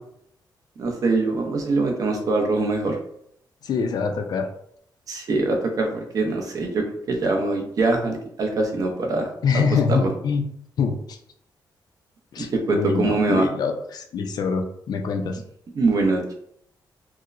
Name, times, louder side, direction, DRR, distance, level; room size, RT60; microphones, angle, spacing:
voice 1, 0.8-3.0 5.1-9.3 9.9-10.1 12.4-13.5 15.8-16.3, right 3 dB, 50° right, 2 dB, 0.6 m, -23 dB
voice 2, 3.6-4.5 9.4-10.4 10.8-11.2 12.3-15.4, left 5 dB, 55° left, 4 dB, 0.4 m, -24 dB
4.5 x 2.0 x 2.5 m, 0.69 s
wide cardioid pair, 165°, 8 cm